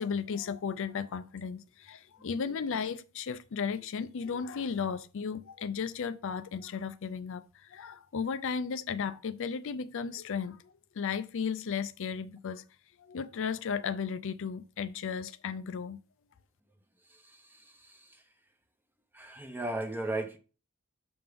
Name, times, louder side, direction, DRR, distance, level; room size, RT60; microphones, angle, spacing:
voice 1, 0.0-12.6 13.0-16.0, left 6 dB, 60° left, 0.4 m, -35 dB
voice 2, 17.2-18.1 19.1-20.4, right 2 dB, 10° right, 0.8 m, -36 dB
6.9 x 5.3 x 3.4 m
head